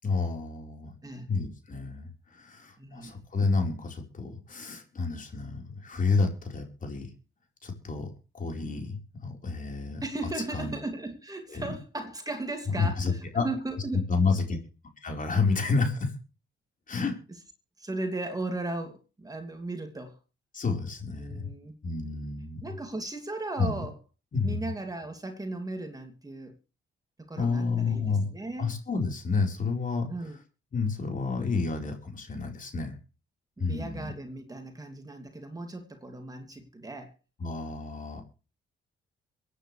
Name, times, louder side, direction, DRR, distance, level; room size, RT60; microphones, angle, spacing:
voice 1, 0.0-0.9 1.3-7.1 7.6-10.0 10.5-10.7 11.5-11.7 12.7-13.4 14.1-14.6 15.0-16.1 16.9-17.1 20.5-21.5 21.8-22.6 23.6-23.8 24.3-24.7 27.4-28.3 28.6-30.1 30.7-33.0 33.6-34.1 37.4-38.2, left 4 dB, 40° left, 3 dB, 4.4 m, -30 dB
voice 2, 2.8-3.2 10.0-14.0 17.8-20.2 21.1-21.7 22.6-24.0 24.4-26.6 27.3-28.7 30.1-30.4 33.6-37.1, right 2 dB, 20° right, 5 dB, 2.7 m, -36 dB
23.5 x 10.0 x 3.3 m, 0.34 s
cardioid pair, 90°, 20 cm